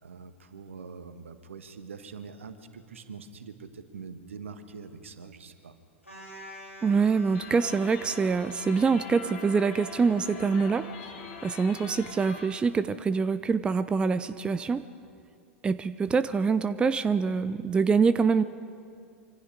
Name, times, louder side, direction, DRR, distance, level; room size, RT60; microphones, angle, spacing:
voice 1, 0.0-5.7, right 5 dB, 70° right, 9 dB, 1.7 m, -44 dB
sound 1, 6.0-11.8, left 2 dB, 90° left, 5.4 m, -47 dB
voice 2, 6.8-11.1 11.4-14.9 15.6-18.4, right 5 dB, 15° right, 14 dB, 0.6 m, -25 dB
sound 2, 7.3-12.7, left 4 dB, 50° left, 3.1 m, -44 dB
25.5 x 25.0 x 5.1 m, 2.3 s
figure-of-eight pair, 95°, 7 cm